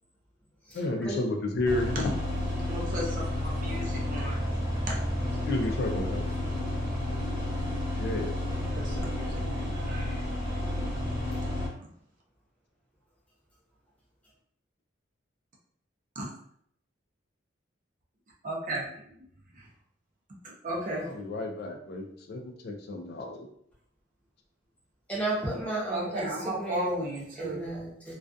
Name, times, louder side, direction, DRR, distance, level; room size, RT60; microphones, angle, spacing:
voice 1, 0.7-2.1 5.4-6.2 8.0-8.3 21.0-23.5, left 2 dB, 55° left, 0.4 m, -31 dB
sound 1, 1.7-11.7, left 1 dB, 20° right, 0.9 m, -31 dB
voice 2, 2.7-4.4 4.9-5.0 8.5-10.2 16.2-16.3 18.4-18.8 20.4-21.0 25.9-27.6, right 1 dB, 45° right, 0.5 m, -35 dB
voice 3, 25.1-27.0 27.4-28.1, right 2 dB, 5° left, 0.7 m, -33 dB
2.3 x 2.2 x 2.5 m
head